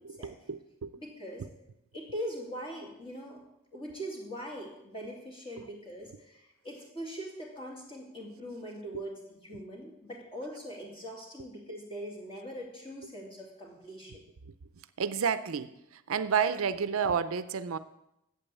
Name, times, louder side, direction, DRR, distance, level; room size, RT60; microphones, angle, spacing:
voice 1, 0.0-1.0 5.6-5.7 15.0-15.7 16.1-17.8, right 6 dB, 65° right, 14 dB, 0.5 m, -30 dB
voice 2, 0.9-1.5 1.9-3.4 3.7-14.2, equal, 25° left, -1 dB, 2.6 m, -42 dB
8.7 x 7.6 x 8.3 m, 0.85 s
head